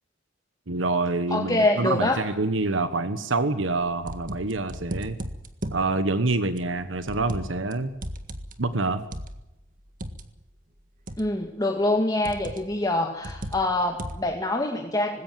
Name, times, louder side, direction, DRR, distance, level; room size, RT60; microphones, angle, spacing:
voice 1, 0.7-5.2 5.7-7.9 8.6-9.0, right 3 dB, 85° right, 11 dB, 1.3 m, -26 dB
voice 2, 1.3-2.2 11.2-15.2, left 2 dB, 20° left, 2 dB, 2.0 m, -25 dB
sound 1, 3.7-5.9 6.6-7.7 8.0-10.3 11.1-11.5 12.2-12.7 13.2-14.3, right 1 dB, 45° right, 1.7 m, -36 dB
20.0 x 17.0 x 9.2 m, 0.94 s
head